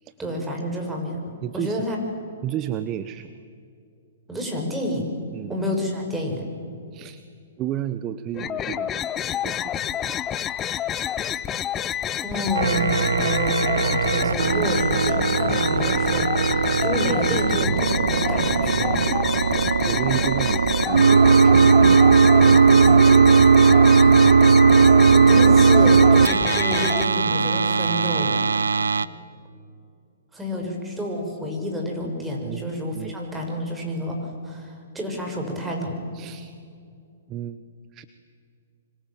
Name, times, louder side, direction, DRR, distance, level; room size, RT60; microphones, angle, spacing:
voice 1, 0.2-2.0 4.3-5.1 5.5-6.5 12.2-19.0 25.1-28.4 30.3-36.0, equal, 10° right, 1 dB, 6.4 m, -29 dB
voice 2, 1.4-1.9 2.4-3.3 5.3-5.5 6.9-7.2 7.6-9.0 9.3-9.9 19.9-23.3 23.9-24.3 32.4-32.7 32.9-33.1 36.1-36.5 37.3-37.6 37.9-38.0, right 11 dB, 30° right, 13 dB, 1.0 m, -32 dB
sound 1, 8.3-27.1, left 10 dB, 20° left, 0.8 m, -29 dB
sound 2, 12.6-29.1, right 5 dB, 85° right, 0.8 m, -17 dB
26.0 x 25.5 x 7.6 m, 2.4 s
hypercardioid pair, 125°, 0 cm